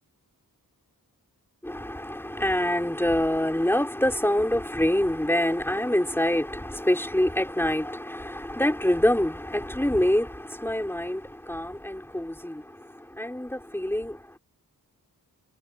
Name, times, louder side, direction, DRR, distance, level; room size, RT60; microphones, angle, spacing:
voice 1, 1.6-14.4, left 1 dB, 5° left, 4.2 m, -26 dB
wide cardioid pair, 95°, 35 cm